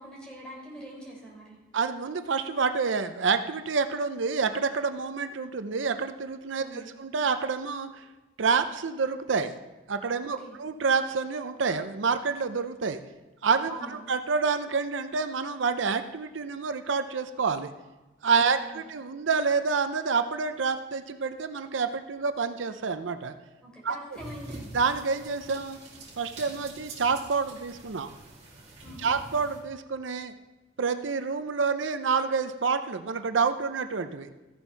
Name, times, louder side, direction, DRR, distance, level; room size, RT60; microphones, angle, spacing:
voice 1, 0.0-1.6 6.6-6.9 10.4-10.6 13.7-14.0 18.6-18.8 23.6-24.6 28.8-29.1, right 1 dB, 5° left, -3 dB, 3.9 m, -43 dB
voice 2, 1.7-8.0 8.4-9.6 9.9-13.0 13.4-17.7 18.2-23.3 23.8-24.0 24.7-25.8 26.2-28.1 29.0-30.3 30.8-34.3, right 5 dB, 85° right, 9 dB, 0.6 m, -28 dB
sound 1, 24.1-29.6, right 2 dB, 35° right, 2.8 m, -45 dB
14.5 x 7.0 x 5.7 m, 1.1 s
head